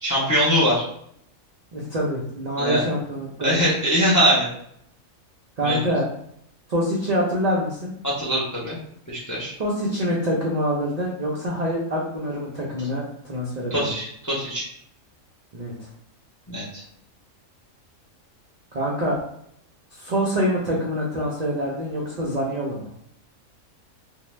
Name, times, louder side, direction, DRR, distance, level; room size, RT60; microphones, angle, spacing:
voice 1, 0.0-0.9 2.6-2.8 3.4-4.5 5.6-5.8 8.0-8.8 9.1-9.5 13.7-14.7 16.5-16.8, equal, 30° left, -5 dB, 0.3 m, -22 dB
voice 2, 1.7-3.7 5.6-6.1 6.7-7.9 9.6-14.0 15.5-15.9 18.7-19.2 19.9-22.9, equal, 75° right, -4 dB, 0.3 m, -25 dB
2.6 x 2.0 x 3.1 m, 0.69 s
omnidirectional pair, 1.4 m